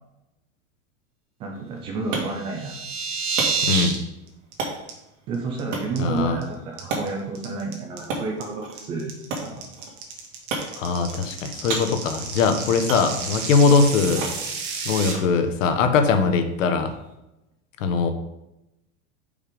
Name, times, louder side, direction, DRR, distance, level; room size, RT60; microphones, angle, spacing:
voice 1, 1.4-2.8 5.3-9.6 14.1-14.3, right 3 dB, 15° right, 1 dB, 0.3 m, -30 dB
sound 1, 1.5-17.1, right 3 dB, 75° right, 2.1 m, -36 dB
sound 2, 2.3-4.0 4.3-4.5 4.9-5.0 5.3-5.6 6.0-6.4 6.8-15.1, right 5 dB, 55° right, 1.7 m, -30 dB
voice 2, 3.6-4.0 6.0-6.4 10.7-14.2 14.8-16.9 17.8-18.1, left 4 dB, 85° left, 7 dB, 1.2 m, -21 dB
5.4 x 5.3 x 5.1 m, 0.92 s
supercardioid pair, 165°, 38 cm